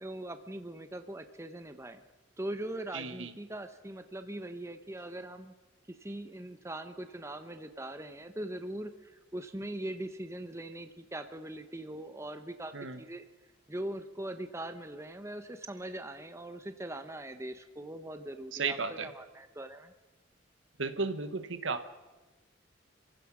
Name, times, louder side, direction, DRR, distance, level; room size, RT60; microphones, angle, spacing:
voice 1, 0.0-2.0 2.4-5.5 5.9-13.2 13.7-19.9, right 1 dB, 15° right, 9 dB, 0.9 m, -41 dB
voice 2, 2.9-3.3 12.7-13.0 18.5-19.1 20.8-21.9, right 4 dB, 75° right, 10 dB, 1.3 m, -34 dB
27.0 x 16.0 x 6.2 m, 1.2 s
head